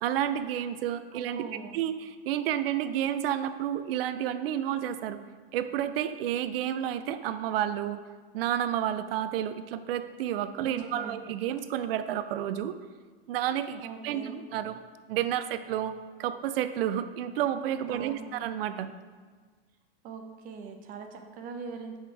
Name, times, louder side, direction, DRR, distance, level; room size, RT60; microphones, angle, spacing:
voice 1, 0.0-1.4 1.7-5.2 5.5-8.0 8.3-12.8 13.3-14.8 15.1-15.9 16.2-18.9, right 10 dB, 65° right, 11 dB, 0.5 m, -30 dB
voice 2, 1.1-1.8 10.6-11.2 13.8-14.5 17.9-18.3 20.0-22.0, right 5 dB, 25° right, 5 dB, 0.6 m, -42 dB
6.8 x 4.3 x 4.7 m, 1.5 s
supercardioid pair, 140°, 31 cm